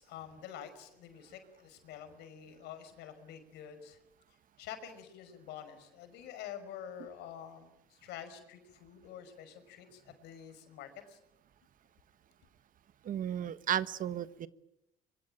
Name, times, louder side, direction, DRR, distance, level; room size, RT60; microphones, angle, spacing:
voice 1, 0.0-4.0 4.6-11.2, left 9 dB, 85° left, 9 dB, 5.7 m, -48 dB
voice 2, 13.0-14.5, right 10 dB, 55° right, 15 dB, 1.3 m, -34 dB
25.0 x 24.0 x 8.9 m, 0.88 s
cardioid pair, 110°, 17 cm